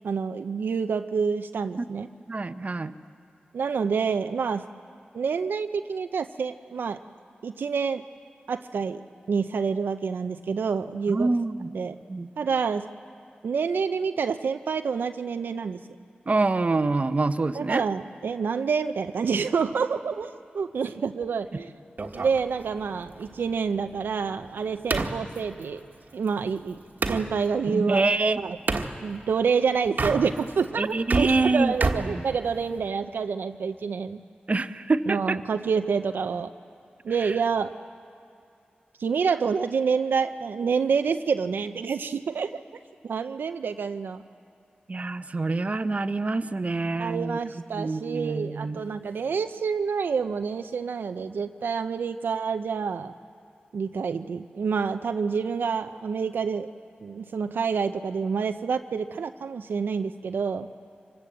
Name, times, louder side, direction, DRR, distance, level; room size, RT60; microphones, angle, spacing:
voice 1, 0.0-2.1 3.5-4.6 5.1-7.0 7.4-8.0 8.5-11.3 11.7-12.0 12.4-12.9 13.4-15.8 17.5-21.7 22.1-25.8 26.1-26.8 27.1-28.0 28.4-28.6 29.0-34.2 35.1-36.5 37.0-37.7 39.0-42.6 43.0-44.2 47.0-53.1 53.7-56.7 57.0-60.7, right 5 dB, 85° right, 8 dB, 0.6 m, -28 dB
voice 2, 2.3-2.9 11.1-11.7 12.1-12.3 16.3-17.8 27.7-28.4 30.8-31.7 32.0-32.2 34.5-35.4 44.9-47.4 47.7-48.8, right 3 dB, 45° right, 10 dB, 0.8 m, -26 dB
sound 1, 22.0-27.3 28.7-28.9 29.8-30.6 30.9-32.9, right 3 dB, 65° right, 1.4 m, -31 dB
25.5 x 20.0 x 8.0 m, 2.4 s
cardioid pair, 50°, 3 cm